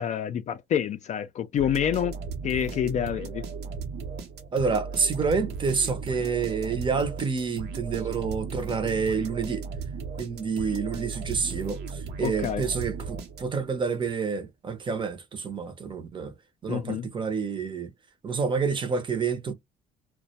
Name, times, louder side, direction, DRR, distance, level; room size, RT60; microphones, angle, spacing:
voice 1, 0.0-2.2 2.4-3.4 12.2-12.7 16.7-17.1, left 9 dB, 45° left, 0.4 m, -27 dB
sound 1, 1.6-13.8, right 5 dB, 85° right, 0.8 m, -36 dB
voice 2, 4.5-9.7 10.2-16.3 16.6-17.9 18.2-19.5, right 5 dB, 30° right, 0.6 m, -28 dB
2.1 x 2.1 x 2.7 m
cardioid pair, 110°, 17 cm